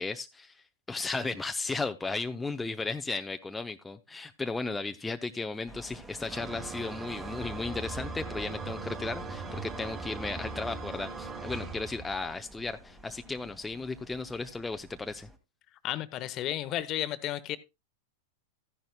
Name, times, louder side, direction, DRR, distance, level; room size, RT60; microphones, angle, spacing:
voice 1, 0.0-15.3, left 3 dB, 10° left, 0.6 m, -35 dB
sound 1, 5.7-15.4, right 1 dB, 10° right, 1.6 m, -50 dB
sound 2, 6.3-12.3, right 3 dB, 25° right, 4.0 m, -39 dB
voice 2, 15.8-17.6, left 13 dB, 40° left, 0.8 m, -33 dB
13.5 x 10.5 x 2.2 m
hypercardioid pair, 105°, 0 cm